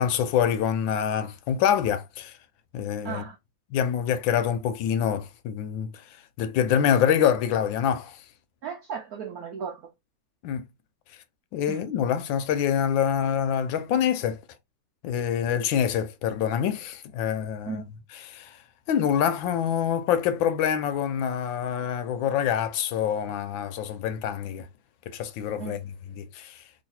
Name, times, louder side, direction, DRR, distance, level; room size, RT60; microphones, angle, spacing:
voice 1, 0.0-2.4 2.7-3.2 3.7-8.3 10.4-10.7 11.5-14.4 15.0-18.6 18.9-24.7 25.1-26.8, left 8 dB, 75° left, 1.2 m, -26 dB
voice 2, 3.0-3.4 8.6-9.8 11.7-11.8 17.6-17.8 25.6-25.8, right 7 dB, 75° right, 0.8 m, -35 dB
3.2 x 2.7 x 4.2 m
omnidirectional pair, 2.3 m